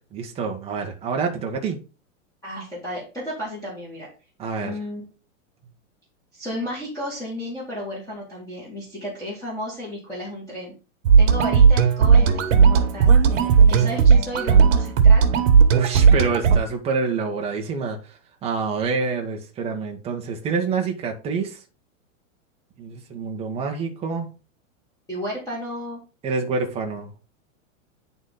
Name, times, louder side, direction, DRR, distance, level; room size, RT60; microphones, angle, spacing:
voice 1, 0.1-1.8 4.4-4.8 15.7-18.0 18.4-21.6 22.8-24.3 26.2-27.1, right 4 dB, 15° right, 1.1 m, -27 dB
voice 2, 2.4-4.1 4.6-5.1 6.3-10.7 11.2-13.1 13.7-15.3 25.1-26.0, equal, 10° left, 2.3 m, -33 dB
sound 1, 11.0-16.6, right 6 dB, 65° right, 1.5 m, -15 dB
9.5 x 4.1 x 3.9 m
supercardioid pair, 160°, 40 cm